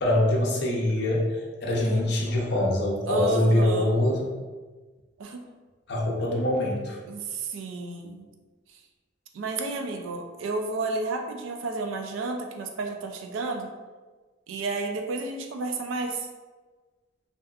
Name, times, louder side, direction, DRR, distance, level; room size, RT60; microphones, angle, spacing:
voice 1, 0.0-4.2 5.9-7.0, left 1 dB, 60° left, -1 dB, 0.5 m, -24 dB
voice 2, 3.1-3.9 5.2-5.4 7.0-8.3 8.7-8.8 9.3-13.7 14.5-16.3, right 3 dB, 75° right, 4 dB, 0.3 m, -31 dB
2.7 x 2.2 x 2.3 m, 1.3 s
head